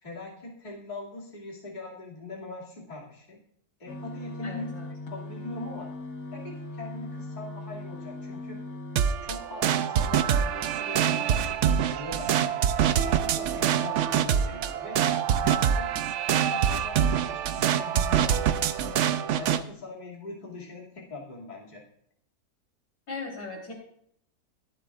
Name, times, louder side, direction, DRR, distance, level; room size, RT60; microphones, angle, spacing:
voice 1, 0.0-3.4 3.8-4.7 5.1-5.9 6.3-8.6 9.2-12.7 13.0-15.0 15.3-16.0 16.3-19.0 19.3-21.8, left 2 dB, 30° left, -4 dB, 2.5 m, -41 dB
sound 1, 3.9-9.0, left 2 dB, 65° left, 1.6 m, -39 dB
voice 2, 4.4-4.9 23.1-23.7, left 3 dB, 80° left, -1 dB, 4.1 m, -38 dB
sound 2, 9.0-19.6, right 9 dB, 65° right, 0.8 m, -25 dB
23.0 x 7.7 x 2.4 m, 0.66 s
omnidirectional pair, 1.7 m